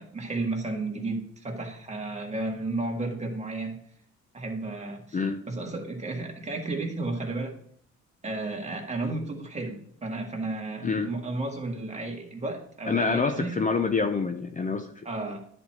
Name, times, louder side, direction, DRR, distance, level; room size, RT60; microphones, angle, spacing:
voice 1, 0.0-3.8 4.3-5.2 5.5-7.6 8.2-13.6 15.0-15.4, right 2 dB, 20° right, 1 dB, 1.8 m, -33 dB
voice 2, 12.9-14.9, left 4 dB, 25° left, 6 dB, 0.6 m, -26 dB
9.9 x 4.5 x 4.5 m, 0.63 s
cardioid pair, 90°, 30 cm